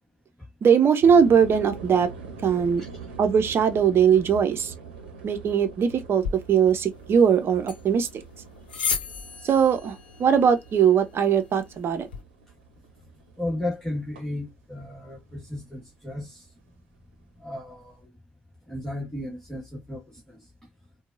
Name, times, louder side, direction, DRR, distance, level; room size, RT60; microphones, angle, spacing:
voice 1, 0.6-2.1 2.4-2.8 3.2-4.7 5.2-6.2 6.5-8.1 9.4-12.1, right 7 dB, 50° right, 0.8 m, -20 dB
sound 1, 1.0-15.6 15.8-16.4, right 5 dB, 75° right, 0.9 m, -44 dB
sound 2, 6.2-12.2, left 6 dB, 80° left, 0.7 m, -36 dB
voice 2, 13.4-16.5 17.4-18.1 18.7-20.5, left 1 dB, 10° left, 1.6 m, -34 dB
4.5 x 2.3 x 2.6 m
figure-of-eight pair, 45°, 5 cm